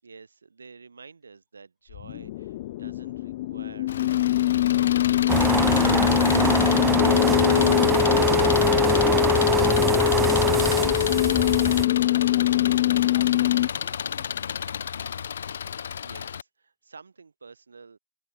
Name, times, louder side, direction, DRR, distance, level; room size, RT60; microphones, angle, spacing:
voice 1, 0.0-4.7 15.9-18.0, right 5 dB, 85° right, 7.6 m, -50 dB
sound 1, 1.9-13.7, left 16 dB, 50° left, 0.5 m, -22 dB
Engine, 3.9-16.4, left 7 dB, 70° left, 1.9 m, -31 dB
sound 2, 5.3-11.9, right 8 dB, 15° right, 0.7 m, -25 dB
voice 2, 8.3-8.4, left 8 dB, 15° left, 6.0 m, -53 dB
hypercardioid pair, 130°, 0 cm